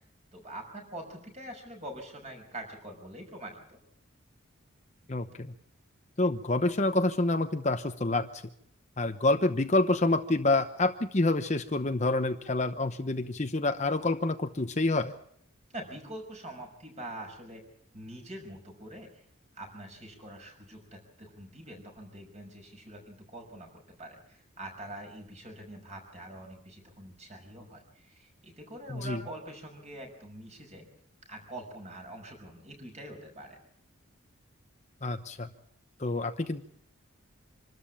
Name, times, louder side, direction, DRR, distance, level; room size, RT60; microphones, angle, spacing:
voice 1, 0.3-3.8 15.7-17.6 17.9-19.2 19.5-30.9 31.3-33.6, right 1 dB, 30° right, 3 dB, 6.1 m, -44 dB
voice 2, 5.1-5.5 6.2-8.4 9.0-15.1 28.9-29.2 35.0-35.5 36.0-36.6, left 2 dB, 35° left, 8 dB, 0.9 m, -27 dB
26.5 x 13.0 x 8.6 m, 0.67 s
head